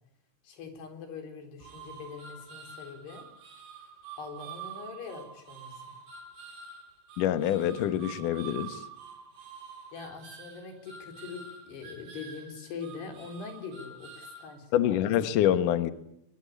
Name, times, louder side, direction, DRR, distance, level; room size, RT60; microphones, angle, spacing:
voice 1, 0.4-3.3 4.2-6.0 9.9-15.1, left 5 dB, 55° left, 5 dB, 5.8 m, -43 dB
sound 1, 1.6-14.6, right 6 dB, 50° right, 4.9 m, -47 dB
voice 2, 7.2-8.8 14.7-15.9, left 11 dB, 90° left, 11 dB, 1.8 m, -26 dB
23.5 x 21.0 x 8.5 m, 0.79 s
omnidirectional pair, 5.7 m